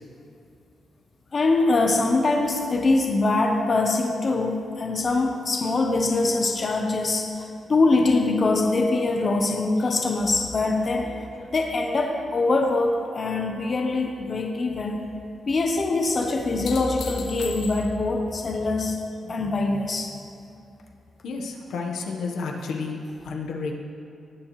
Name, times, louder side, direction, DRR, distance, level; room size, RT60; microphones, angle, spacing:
voice 1, 1.3-11.1 11.5-15.0 15.5-19.0 19.2-20.1, left 3 dB, 30° left, 2 dB, 0.8 m, -23 dB
sound 1, 9.8-13.2 13.6-14.2 16.3-18.2 20.8-20.9, left 5 dB, 65° left, 1.0 m, -43 dB
voice 2, 21.2-23.7, left 4 dB, 85° left, 1 dB, 1.2 m, -31 dB
18.5 x 9.2 x 3.2 m, 2.6 s
wide cardioid pair, 165°, 0 cm